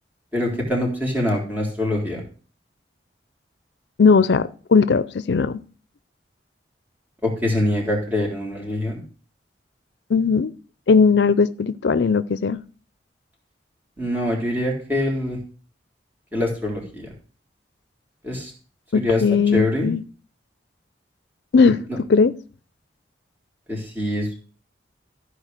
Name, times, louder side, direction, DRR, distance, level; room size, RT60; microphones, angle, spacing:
voice 1, 0.3-2.2 7.2-9.0 14.0-15.4 16.3-17.1 18.2-18.5 18.9-19.2 19.5-19.9 21.9-22.0 23.7-24.3, left 1 dB, 10° right, -2 dB, 3.6 m, -24 dB
voice 2, 4.0-5.6 10.1-10.5 10.9-12.6 18.9-20.0 21.5-21.7 22.1-22.3, left 5 dB, 75° left, 15 dB, 0.5 m, -18 dB
14.0 x 4.9 x 6.5 m, 0.40 s
head